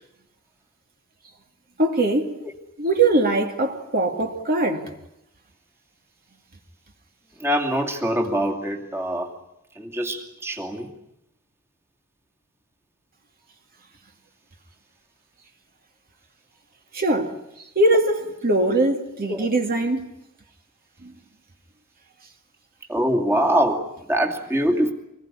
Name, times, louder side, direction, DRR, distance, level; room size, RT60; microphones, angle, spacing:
voice 1, 1.8-2.4 2.8-4.8 16.9-17.3 17.8-20.1, right 2 dB, 45° right, 2.5 m, -21 dB
voice 2, 7.4-9.3 9.8-10.9 19.3-19.5 22.9-24.9, equal, 10° right, 2.7 m, -23 dB
25.5 x 20.5 x 9.9 m
head